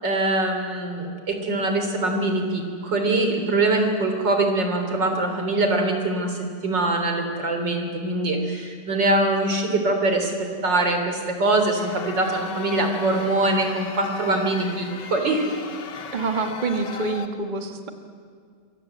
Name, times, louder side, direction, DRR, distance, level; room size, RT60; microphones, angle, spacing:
voice 1, 0.0-15.6, right 2 dB, 85° right, 4 dB, 4.1 m, -23 dB
sound 1, 11.7-17.3, left 6 dB, 75° left, 2.0 m, -37 dB
voice 2, 16.1-17.9, right 3 dB, 25° right, 5 dB, 1.7 m, -26 dB
27.0 x 24.0 x 8.0 m, 2.1 s
omnidirectional pair, 1.9 m